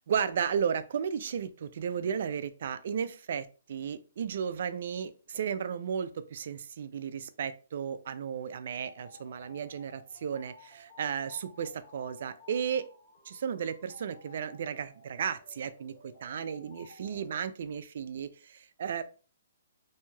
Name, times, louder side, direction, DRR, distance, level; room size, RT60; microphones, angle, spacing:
voice 1, 0.1-12.8 13.3-19.0, right 7 dB, 55° right, 12 dB, 0.3 m, -34 dB
sound 1, 8.8-17.4, left 2 dB, 45° left, 1.3 m, -56 dB
3.0 x 2.7 x 2.2 m, 0.35 s
hypercardioid pair, 165°, 0 cm